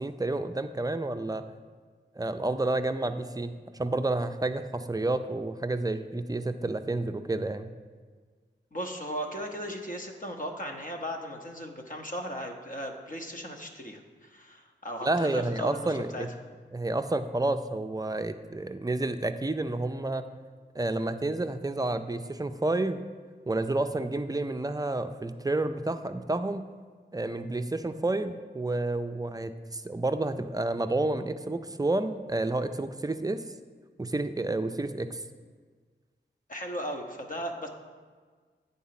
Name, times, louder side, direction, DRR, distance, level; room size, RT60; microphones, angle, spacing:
voice 1, 0.0-1.4 2.2-7.7 15.0-16.3 16.7-20.2 20.7-23.0 23.5-26.7 27.1-33.4 34.0-35.2, right 2 dB, 20° right, 9 dB, 0.5 m, -30 dB
voice 2, 8.7-16.3 36.5-37.7, equal, 45° left, 2 dB, 1.0 m, -37 dB
8.4 x 3.9 x 5.8 m, 1.5 s
cardioid pair, 45°, 19 cm